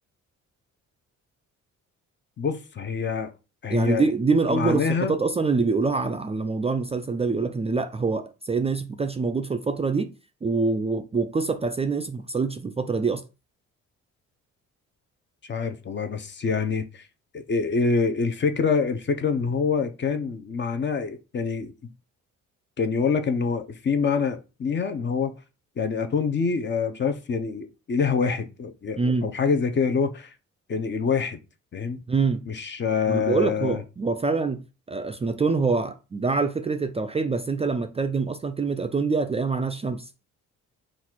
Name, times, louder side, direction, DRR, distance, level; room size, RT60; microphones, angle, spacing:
voice 1, 2.4-3.3 3.6-4.0 4.5-5.2 15.5-17.0 17.3-21.7 22.8-25.3 25.8-30.3 30.7-31.4 31.7-32.0 32.5-33.8, left 5 dB, 35° left, 0.7 m, -26 dB
voice 2, 3.7-10.1 10.4-13.2 29.0-29.3 32.1-32.4 33.1-34.6 34.9-40.1, right 4 dB, 20° right, 0.4 m, -25 dB
3.9 x 2.5 x 4.5 m
cardioid pair, 90°, 30 cm